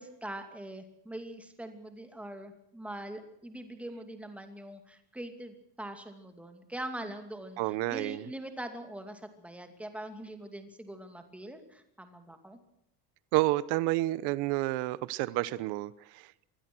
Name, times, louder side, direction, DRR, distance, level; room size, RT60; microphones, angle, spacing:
voice 1, 0.0-12.6, right 1 dB, 5° right, 2.6 m, -43 dB
voice 2, 7.6-8.2 13.3-16.4, right 18 dB, 90° right, 1.1 m, -30 dB
25.0 x 21.0 x 6.2 m
cardioid pair, 175°, 39 cm